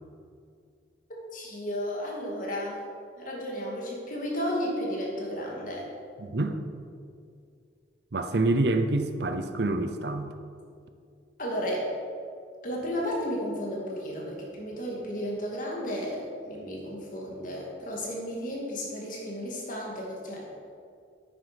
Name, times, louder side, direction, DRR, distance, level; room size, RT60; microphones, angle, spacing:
voice 1, 1.3-2.8 3.2-5.8 11.4-11.9 12.6-20.4, equal, 45° left, -3 dB, 2.6 m, -33 dB
voice 2, 6.2-6.6 8.1-10.3, right 2 dB, 60° right, 8 dB, 0.7 m, -27 dB
10.5 x 9.0 x 5.2 m, 2.3 s
head